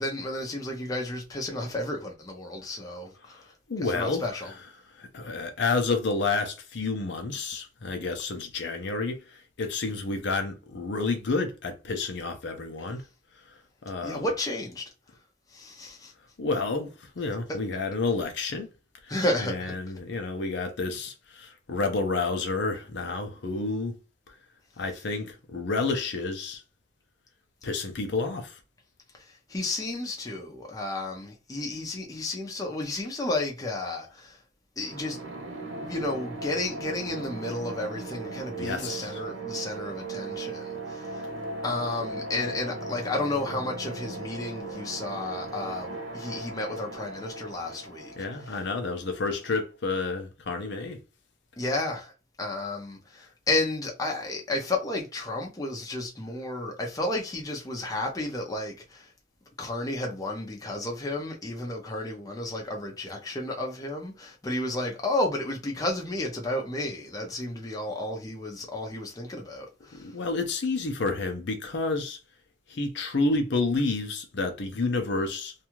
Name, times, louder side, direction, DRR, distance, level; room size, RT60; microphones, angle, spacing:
voice 1, 0.0-3.4 3.8-4.5 14.0-14.8 15.5-16.1 19.1-19.7 29.5-34.4 34.8-35.2 35.8-41.3 41.6-48.6 51.6-52.1 52.4-59.1 59.6-70.1, left 2 dB, 20° left, 0.6 m, -32 dB
voice 2, 3.7-4.5 4.9-13.0 13.5-13.6 13.8-14.3 16.4-18.7 19.0-19.1 19.4-24.0 24.8-26.6 27.6-28.6 38.6-39.2 48.2-51.0 69.9-72.2 72.7-75.5, left 3 dB, 65° left, 0.6 m, -30 dB
sound 1, 34.8-49.5, right 3 dB, 80° right, 0.6 m, -38 dB
2.6 x 2.4 x 2.9 m
head